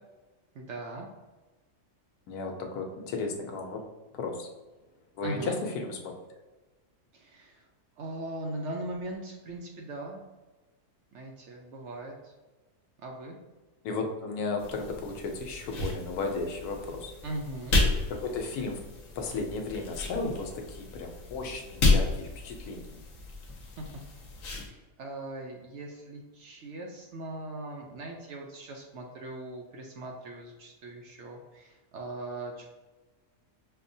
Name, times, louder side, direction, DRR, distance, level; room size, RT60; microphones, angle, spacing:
voice 1, 0.5-1.1 5.2-5.6 7.1-7.7 8.0-10.2 11.1-12.3 13.0-13.4 17.2-17.8 23.8-23.9 24.5-32.7, right 2 dB, 65° right, 0 dB, 0.7 m, -40 dB
voice 2, 2.3-3.8 4.1-4.5 5.1-6.1 13.8-17.1 18.1-18.8 19.2-23.0, left 3 dB, 90° left, 3 dB, 1.1 m, -34 dB
sound 1, 14.6-24.7, left 2 dB, 65° left, 1.1 m, -31 dB
5.7 x 2.1 x 2.6 m, 1.2 s
omnidirectional pair, 1.6 m